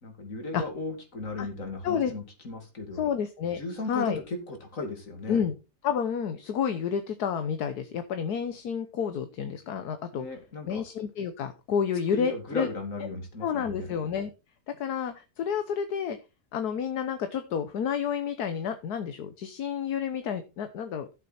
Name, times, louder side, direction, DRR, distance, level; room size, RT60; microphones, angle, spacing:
voice 1, 0.0-3.1 3.6-5.4 10.1-10.8 12.1-13.9, left 2 dB, 55° left, 5 dB, 3.0 m, -36 dB
voice 2, 3.0-3.6 3.9-4.2 5.3-5.5 5.8-10.3 10.7-12.7 13.4-14.3 14.8-16.2 16.5-21.1, left 7 dB, 75° left, 9 dB, 1.5 m, -30 dB
12.5 x 7.5 x 4.3 m, 0.28 s
omnidirectional pair, 1.7 m